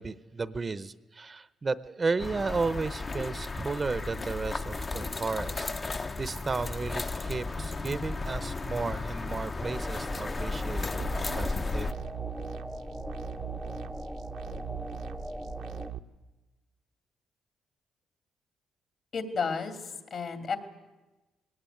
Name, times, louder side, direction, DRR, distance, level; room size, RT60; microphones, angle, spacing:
voice 1, 0.0-11.1 11.3-11.9, right 4 dB, 30° right, 14 dB, 0.8 m, -33 dB
sound 1, 2.2-11.9, left 3 dB, 30° left, 0.8 m, -34 dB
sound 2, 9.6-15.9, equal, ahead, 0.8 m, -40 dB
sound 3, 11.0-16.0, right 11 dB, 80° right, 1.0 m, -41 dB
voice 2, 19.1-19.8 20.1-20.6, left 5 dB, 55° left, 7 dB, 2.6 m, -31 dB
19.5 x 17.5 x 9.3 m, 1.1 s
cardioid pair, 90°, 0 cm